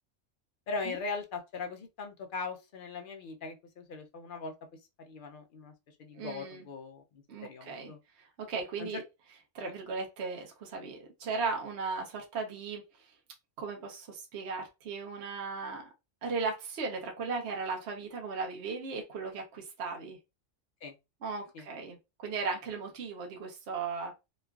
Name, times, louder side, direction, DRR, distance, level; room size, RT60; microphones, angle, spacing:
voice 1, 0.7-4.5 5.0-5.7 6.0-7.0 7.4-8.0 8.8-9.0 20.8-20.9 21.5-21.6, left 4 dB, 65° left, 0.5 m, -39 dB
voice 2, 6.1-6.7 7.3-9.0 9.5-13.1 13.6-15.9 16.2-20.2 21.2-24.1, right 4 dB, 65° right, 0.9 m, -37 dB
2.9 x 2.3 x 2.3 m
omnidirectional pair, 1.3 m